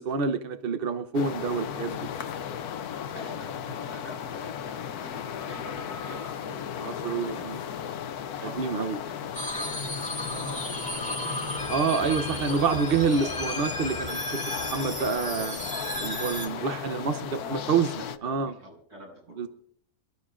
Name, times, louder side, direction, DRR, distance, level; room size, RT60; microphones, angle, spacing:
voice 1, 0.0-2.0 6.8-7.6 8.6-9.0 11.7-15.7 16.0-17.2 17.5-17.9 18.2-18.5 19.4-19.5, right 5 dB, 50° right, 9 dB, 0.8 m, -27 dB
sound 1, 1.1-18.2, left 8 dB, 80° left, 1.3 m, -36 dB
voice 2, 3.1-11.9 13.2-13.4 16.4-19.5, equal, 75° right, -3 dB, 8.6 m, -48 dB
Telephone, 5.3-8.3 8.6-9.2 9.6-9.9, left 4 dB, 50° left, 2.3 m, -46 dB
sound 2, 9.3-16.5, equal, 5° left, 1.8 m, -34 dB
27.5 x 12.0 x 2.5 m, 0.63 s
omnidirectional pair, 1.6 m